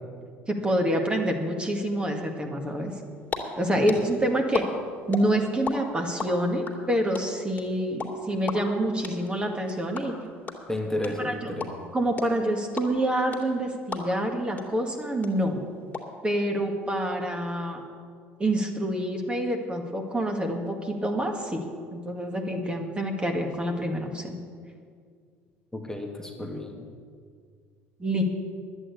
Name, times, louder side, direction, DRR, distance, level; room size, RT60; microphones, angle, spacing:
voice 1, 0.5-2.9 3.6-4.7 5.1-10.1 11.0-11.5 11.9-15.6 16.2-17.8 18.4-21.6 21.9-24.4 28.0-28.2, right 1 dB, 15° right, 2 dB, 2.1 m, -27 dB
sound 1, 3.0-3.4 3.6-5.7 6.0-14.3 14.6-14.7 14.9-16.0, left 5 dB, 25° left, 2.6 m, -34 dB
voice 2, 10.7-11.7 25.7-26.7, left 1 dB, 10° left, 1 dB, 1.9 m, -32 dB
11.0 x 8.9 x 8.4 m, 2.1 s
hypercardioid pair, 60°, 7 cm